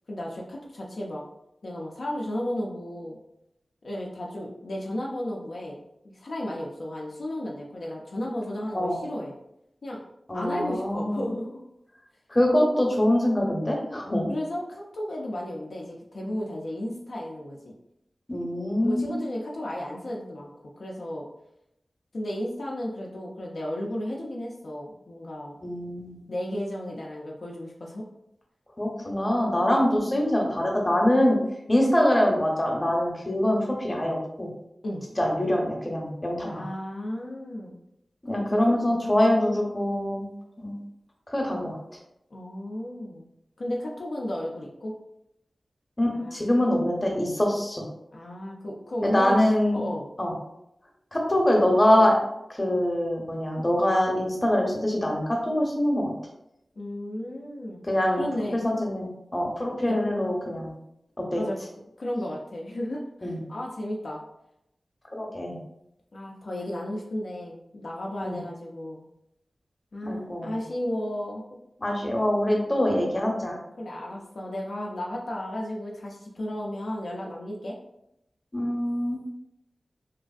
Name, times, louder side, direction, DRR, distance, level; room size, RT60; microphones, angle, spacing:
voice 1, 0.1-1.2 1.6-3.2 3.8-5.8 6.1-9.3 9.8-10.0 10.3-11.6 12.6-12.7 14.3-17.7 18.8-21.3 22.1-25.6 26.3-28.1 34.8-35.1 36.5-37.8 38.3-39.1 42.3-43.3 43.6-44.9 46.1-46.4 48.1-49.4 49.7-50.1 56.8-57.8 58.1-58.6 59.8-60.0 61.3-61.6 62.0-64.2 66.1-69.1 69.9-71.6 73.8-77.8, left 1 dB, 75° left, -2 dB, 0.4 m, -34 dB
voice 2, 10.3-11.3 12.3-14.3 18.3-19.1 25.6-26.2 28.8-31.4 31.7-34.5 35.2-36.6 38.2-40.3 40.6-40.7 41.3-41.8 46.0-47.8 49.0-49.8 50.2-50.3 51.1-52.2 52.5-56.1 57.9-60.7 61.2-61.4 63.2-63.4 65.1-65.6 68.2-68.4 70.1-70.5 71.8-73.6 78.5-79.2, left 1 dB, 25° left, -1 dB, 0.7 m, -24 dB
3.0 x 2.4 x 2.4 m, 0.83 s
wide cardioid pair, 65°, 0 cm